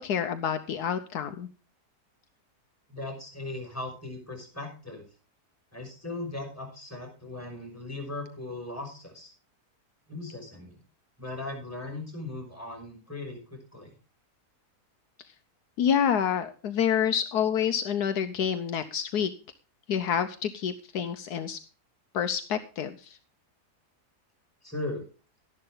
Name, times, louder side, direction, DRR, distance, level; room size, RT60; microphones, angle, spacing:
voice 1, 0.0-1.5 15.8-19.3 19.9-21.6 22.1-23.2, left 8 dB, 75° left, 10 dB, 1.3 m, -28 dB
voice 2, 2.9-5.1 5.7-9.3 10.1-10.8 11.2-13.9 24.6-25.0, left 2 dB, 10° left, 1 dB, 5.6 m, -38 dB
12.5 x 11.0 x 3.8 m, 0.35 s
omnidirectional pair, 1.7 m